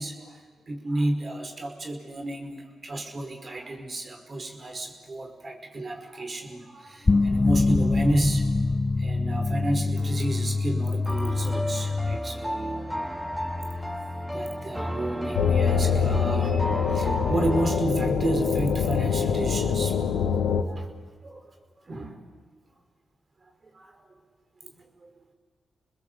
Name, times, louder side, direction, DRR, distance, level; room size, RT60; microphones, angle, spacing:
voice 1, 0.0-8.5 9.0-13.1 13.8-13.9 14.3-20.0 20.7-21.0 21.2-21.5 21.9-22.2 23.7-24.0 24.6-25.1, right 1 dB, 45° right, 4 dB, 5.0 m, -31 dB
sound 1, 7.1-12.2, left 3 dB, 40° left, 0.9 m, -24 dB
sound 2, 10.0-10.5 11.0-17.8, equal, 5° right, 5.0 m, -32 dB
sound 3, 15.4-20.6, left 7 dB, 90° left, 1.6 m, -24 dB
29.0 x 20.5 x 8.2 m, 1.5 s
supercardioid pair, 50°, 0 cm